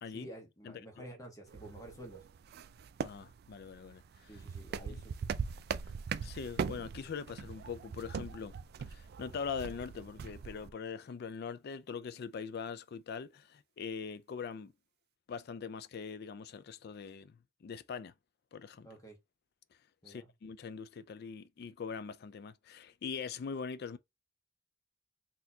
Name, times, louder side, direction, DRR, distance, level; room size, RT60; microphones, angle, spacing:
voice 1, 0.1-2.2 4.3-5.3 18.8-19.2 20.0-20.3, right 1 dB, 20° left, 1.2 m, -50 dB
voice 2, 0.6-1.1 3.0-4.4 4.9-5.0 6.2-8.5 8.9-14.7 15.3-18.1 18.5-18.9 20.1-24.0, left 6 dB, 55° left, 0.4 m, -42 dB
sound 1, 1.5-10.7, right 6 dB, 55° right, 0.3 m, -41 dB
4.2 x 2.9 x 2.7 m
head